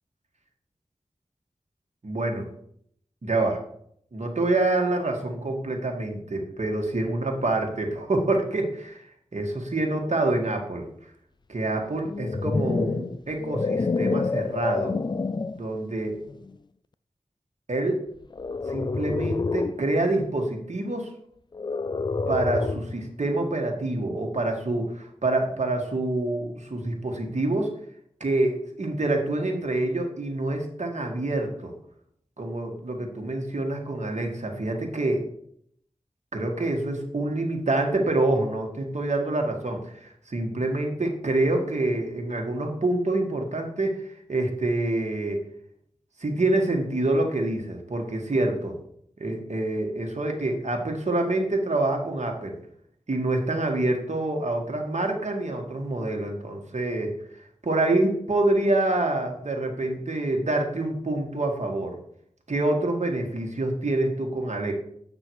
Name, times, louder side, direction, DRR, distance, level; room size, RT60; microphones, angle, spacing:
voice 1, 2.0-2.5 3.2-3.6 4.1-9.0 9.3-10.9 11.5-14.9 15.6-16.2 17.7-18.0 18.7-21.1 22.3-27.7 28.2-31.7 32.4-35.3 36.3-45.4 46.2-48.8 49.2-52.6 53.1-57.1 57.6-62.0 62.5-64.7, right 2 dB, 65° right, 2 dB, 1.7 m, -26 dB
sound 1, 12.0-15.6 16.3-16.5 18.3-19.8 21.5-23.0, left 4 dB, 35° left, 0.3 m, -28 dB
8.2 x 6.0 x 4.7 m, 0.68 s
wide cardioid pair, 50°, 13 cm